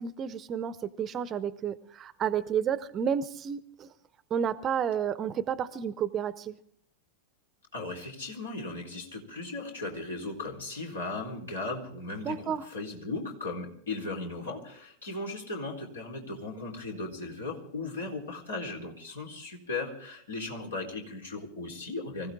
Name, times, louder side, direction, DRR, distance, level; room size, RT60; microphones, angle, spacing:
voice 1, 0.0-3.9 4.3-6.6 12.2-12.6, right 8 dB, 30° right, 16 dB, 0.8 m, -31 dB
voice 2, 7.7-22.3, left 3 dB, 70° left, 0 dB, 4.0 m, -37 dB
25.0 x 15.5 x 3.6 m, 0.66 s
figure-of-eight pair, 90°, 0 cm